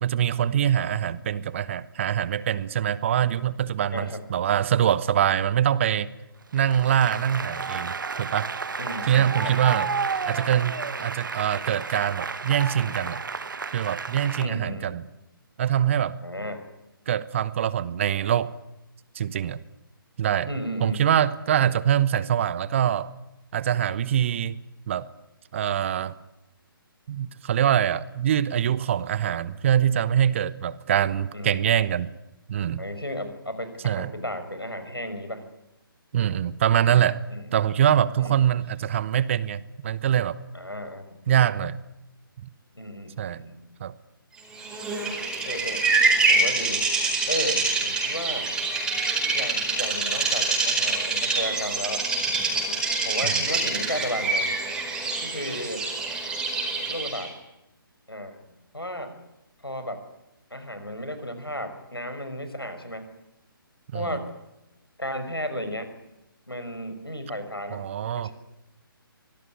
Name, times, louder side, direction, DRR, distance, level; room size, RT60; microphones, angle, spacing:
voice 1, 0.0-6.1 6.5-8.5 9.1-9.9 10.2-13.2 13.7-15.0 15.6-16.2 17.1-18.5 19.1-19.6 20.2-20.5 20.8-23.1 23.5-24.6 24.9-25.1 25.5-26.2 27.1-32.1 32.5-32.8 33.8-34.1 36.1-37.2 37.5-40.4 41.3-41.8 43.2-43.4 43.8-43.9 53.2-53.4 63.9-64.1 67.7-68.3, right 10 dB, 35° right, 18 dB, 1.0 m, -24 dB
Applause, 6.5-14.5, right 5 dB, 60° right, 1.6 m, -32 dB
voice 2, 8.8-9.5 14.4-15.0 16.2-16.6 20.5-21.0 31.3-31.6 32.8-35.4 37.3-37.6 38.2-38.5 40.5-41.0 42.7-43.6 45.4-45.9 46.3-46.9 47.3-48.5 49.3-52.0 53.0-54.5 55.2-55.8 56.9-57.3 58.1-58.4 58.7-59.1 59.6-60.0 60.5-63.1 63.9-64.3 65.0-65.9 66.5-67.8 68.2-68.3, left 1 dB, 90° left, 9 dB, 5.8 m, -34 dB
Bird vocalization bird call bird song, 44.6-57.3, right 3 dB, 5° right, 4.7 m, -25 dB
25.0 x 18.5 x 9.7 m, 0.91 s
figure-of-eight pair, 140°, 12 cm